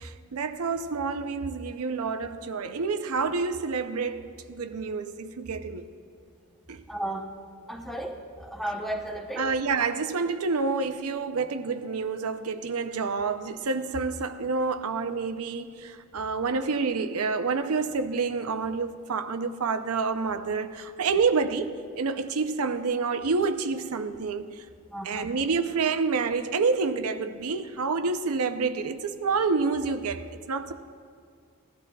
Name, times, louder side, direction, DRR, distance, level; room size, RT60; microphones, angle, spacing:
voice 1, 0.0-5.9 6.7-6.8 9.4-24.7 25.0-30.7, right 4 dB, 80° right, 0.6 m, -28 dB
voice 2, 6.9-7.3 7.7-9.5 24.9-25.3, right 1 dB, ahead, 0.8 m, -34 dB
18.5 x 12.5 x 2.3 m
head